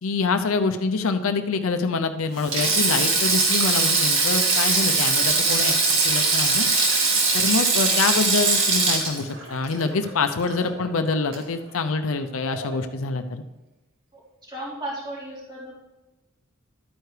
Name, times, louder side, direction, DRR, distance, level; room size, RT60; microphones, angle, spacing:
voice 1, 0.0-5.7 6.0-6.7 7.3-13.4, left 4 dB, 75° left, 8 dB, 0.6 m, -25 dB
Sink (filling or washing), 2.4-10.8 11.1-11.3 12.5-12.8, right 3 dB, 65° right, 2.0 m, -21 dB
voice 2, 14.5-15.7, right 1 dB, 20° right, -8 dB, 4.0 m, -34 dB
12.0 x 9.2 x 3.3 m, 1.1 s
head